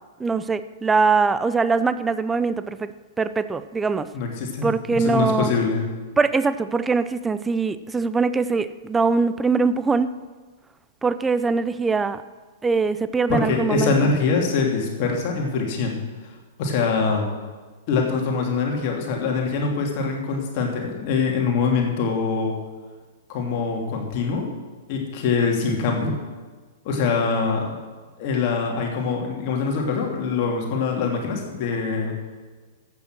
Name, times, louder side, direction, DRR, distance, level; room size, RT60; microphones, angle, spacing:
voice 1, 0.2-4.1 4.6-5.5 6.2-10.2 11.0-12.2 12.6-14.1, right 4 dB, 10° right, 13 dB, 0.5 m, -22 dB
voice 2, 4.1-5.9 13.3-16.0 16.2-16.3 16.6-17.3 17.9-22.5 23.3-24.5 24.9-26.2 26.8-27.7 28.2-32.1, left 4 dB, 40° left, 1 dB, 2.8 m, -24 dB
14.0 x 8.5 x 6.2 m, 1.4 s
figure-of-eight pair, 105°, 0 cm